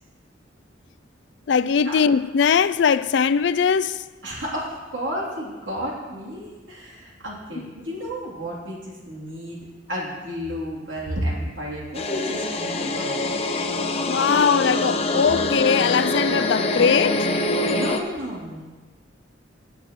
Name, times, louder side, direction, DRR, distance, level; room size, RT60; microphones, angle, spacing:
voice 1, 1.5-4.0 7.6-7.7 14.1-17.3, left 6 dB, 65° left, 0.3 m, -20 dB
voice 2, 4.2-9.6 9.9-13.4 17.6-18.6, equal, 85° right, 3.2 m, -32 dB
sound 1, 11.9-18.0, left 2 dB, 30° left, 0.8 m, -24 dB
17.5 x 8.7 x 3.1 m
head